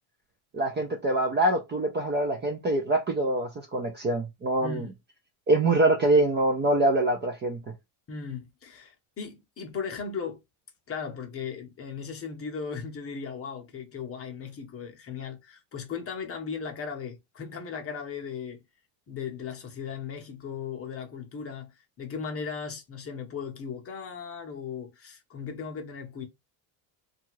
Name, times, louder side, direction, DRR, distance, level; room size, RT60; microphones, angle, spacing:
voice 1, 0.5-4.9 5.5-7.6, right 2 dB, 25° right, 0.4 m, -24 dB
voice 2, 8.1-10.4 10.9-18.6 19.1-26.3, left 6 dB, 30° left, 0.7 m, -37 dB
2.7 x 2.4 x 3.0 m
cardioid pair, 130°, 50 cm